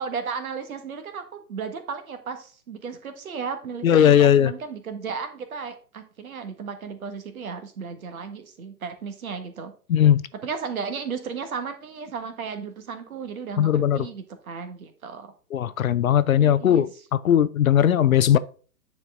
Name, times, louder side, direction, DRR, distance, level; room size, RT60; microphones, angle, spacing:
voice 1, 0.0-9.7 10.4-15.3 16.4-16.9, right 5 dB, 60° right, 1.6 m, -34 dB
voice 2, 3.8-4.5 9.9-10.2 13.6-14.1 15.5-16.9 17.2-18.4, left 10 dB, 60° left, 0.6 m, -18 dB
9.5 x 4.5 x 3.7 m
figure-of-eight pair, 125°, 49 cm